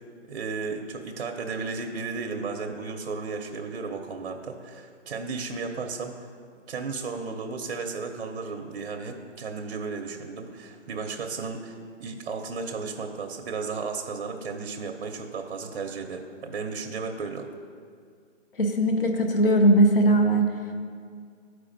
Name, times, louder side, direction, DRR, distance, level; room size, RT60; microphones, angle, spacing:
voice 1, 0.3-6.3 6.7-17.5, right 4 dB, 50° right, 4 dB, 0.6 m, -34 dB
voice 2, 18.6-20.5, right 1 dB, 45° left, 4 dB, 0.8 m, -19 dB
12.0 x 4.7 x 2.5 m, 2.2 s
hypercardioid pair, 160°, 37 cm